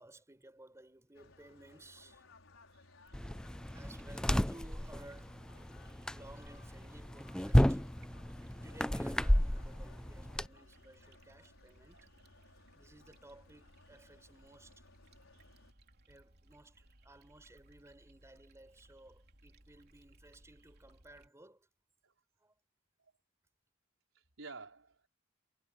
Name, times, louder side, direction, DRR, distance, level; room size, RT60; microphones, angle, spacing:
voice 1, 0.0-2.2 3.0-3.1 3.7-5.4 6.1-7.8 8.6-12.0 12.7-14.8 16.1-21.7 22.4-22.5, right 1 dB, 15° right, 5.0 m, -57 dB
sound 1, 1.1-15.7, left 2 dB, 70° left, 5.6 m, -62 dB
sound 2, 3.0-21.3, right 1 dB, 50° right, 3.3 m, -64 dB
sound 3, 3.1-10.5, equal, 5° left, 0.3 m, -32 dB
voice 2, 24.1-25.1, right 4 dB, 70° right, 5.5 m, -53 dB
head